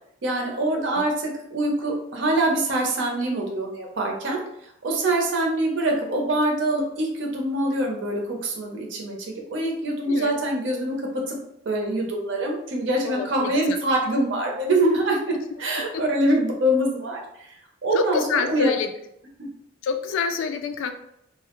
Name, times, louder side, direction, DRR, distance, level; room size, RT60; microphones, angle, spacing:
voice 1, 0.2-4.4 4.8-10.9 11.3-11.4 11.7-17.5 17.8-18.7, right 1 dB, 70° right, 0 dB, 0.6 m, -24 dB
voice 2, 0.7-1.1 10.1-10.4 13.0-13.8 15.9-16.0 17.9-18.9 19.8-20.9, left 5 dB, 85° left, 8 dB, 0.3 m, -27 dB
2.2 x 2.0 x 2.9 m, 0.76 s
head